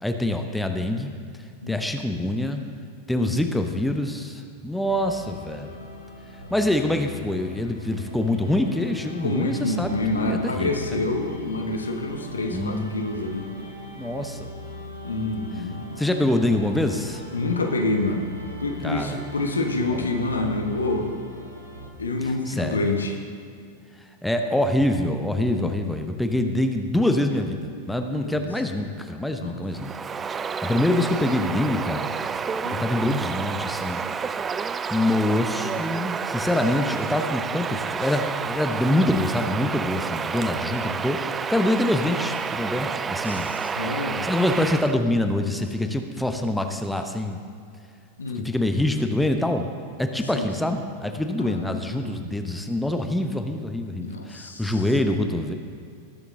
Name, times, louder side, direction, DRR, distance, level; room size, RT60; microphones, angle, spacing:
voice 1, 0.0-1.1 1.7-2.6 3.1-5.8 6.5-10.7 12.5-13.2 14.0-14.5 16.0-17.2 18.8-19.2 19.9-20.1 22.2-22.9 24.0-29.9 30.2-32.1 32.7-34.0 34.9-43.5 44.0-47.4 48.4-49.7 50.0-55.5, left 1 dB, 5° left, 5 dB, 0.8 m, -25 dB
sound 1, 4.8-21.9, left 1 dB, 85° right, 2.9 m, -40 dB
voice 2, 9.2-13.5 15.0-15.8 17.3-18.3 18.6-21.1 22.0-23.2 28.2-28.5 29.4-29.6 32.6-32.9 43.2-44.3 48.2-48.5 50.3-50.5 51.4-52.2 54.0-54.8, left 2 dB, 75° left, 3 dB, 1.2 m, -27 dB
Bird vocalization bird call bird song, 29.7-45.0, right 6 dB, 20° right, 0.3 m, -30 dB
19.0 x 7.0 x 3.7 m, 2.3 s
figure-of-eight pair, 90°, 0 cm